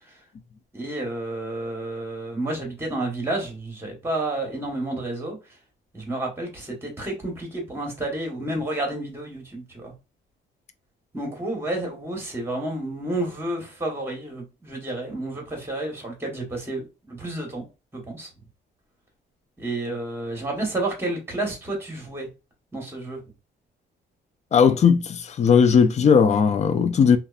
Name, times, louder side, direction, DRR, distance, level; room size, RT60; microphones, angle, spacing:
voice 1, 0.7-5.4 5.9-9.9 11.1-17.6 17.9-18.3 19.6-22.3 22.7-23.2, right 2 dB, 10° right, 1.2 m, -30 dB
voice 2, 24.5-27.2, left 6 dB, 35° left, 0.4 m, -17 dB
2.6 x 2.3 x 2.4 m
cardioid pair, 90°, 20 cm